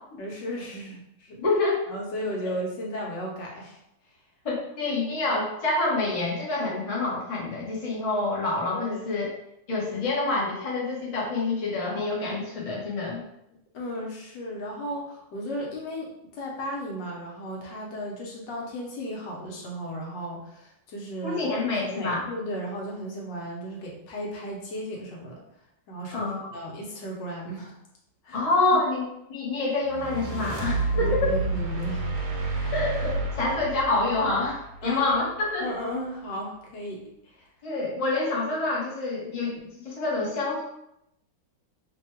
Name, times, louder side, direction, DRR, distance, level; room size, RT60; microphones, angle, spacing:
voice 1, 0.2-1.4 1.9-3.8 8.7-9.1 13.7-21.5 21.8-25.4 25.9-27.8 28.2-28.4 30.9-32.2 32.5-32.7 34.8-35.1 35.6-37.5, equal, 70° left, -2 dB, 1.4 m, -35 dB
voice 2, 1.4-1.8 4.4-9.3 9.7-13.2 21.2-22.3 26.1-26.4 28.3-31.3 32.7-35.7 37.6-39.6 39.8-40.6, left 3 dB, 30° left, -5 dB, 0.6 m, -27 dB
sound 1, 29.9-35.2, right 3 dB, 70° right, 1.3 m, -30 dB
3.4 x 2.2 x 4.3 m, 0.80 s
omnidirectional pair, 2.0 m